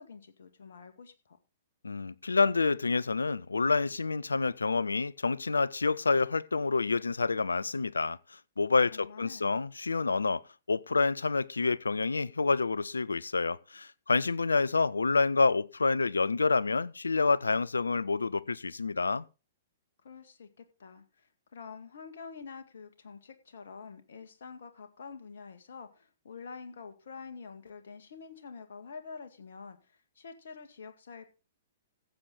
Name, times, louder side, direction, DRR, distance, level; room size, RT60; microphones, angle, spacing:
voice 1, 0.0-1.4 8.9-9.6 20.0-31.2, left 5 dB, 65° left, 1.9 m, -47 dB
voice 2, 1.8-10.4 10.7-19.3, left 4 dB, 80° left, 0.5 m, -28 dB
15.0 x 7.8 x 3.9 m
figure-of-eight pair, 115°, 0 cm